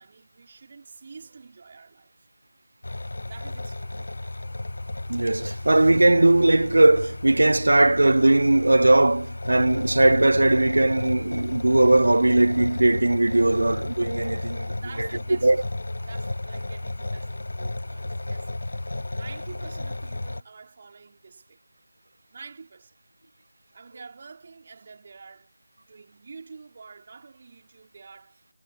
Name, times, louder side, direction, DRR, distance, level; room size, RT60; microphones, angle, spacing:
voice 1, 0.0-2.3 3.3-4.3 14.7-15.5 16.1-21.6 22.3-23.0 23.7-25.5 25.8-28.5, right 4 dB, 30° right, 4.7 m, -47 dB
sound 1, 2.8-20.4, left 2 dB, 55° left, 1.2 m, -33 dB
voice 2, 5.1-15.1 15.4-15.6, right 2 dB, 60° right, 0.4 m, -19 dB
figure-of-eight pair, 165°, 0 cm